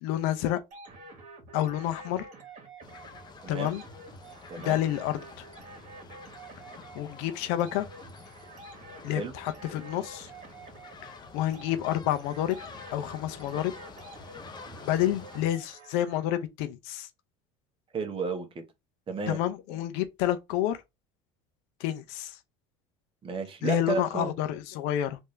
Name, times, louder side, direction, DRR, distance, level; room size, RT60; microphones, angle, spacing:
voice 1, 0.0-0.6 1.5-2.3 3.5-3.8 4.6-5.4 6.9-7.9 9.0-10.3 11.0-12.6 12.9-13.7 14.8-17.1 19.3-20.8 21.8-22.4 23.6-25.2, left 12 dB, 75° left, 0.6 m, -29 dB
sound 1, 0.7-16.4, right 3 dB, 50° right, 1.7 m, -49 dB
sound 2, 2.8-15.4, left 4 dB, 25° left, 0.7 m, -49 dB
voice 2, 3.4-3.8 4.5-4.8 9.1-9.3 17.9-18.6 19.1-19.4 23.2-24.3, right 4 dB, 35° right, 1.1 m, -32 dB
3.4 x 2.7 x 3.2 m
supercardioid pair, 95°, 16 cm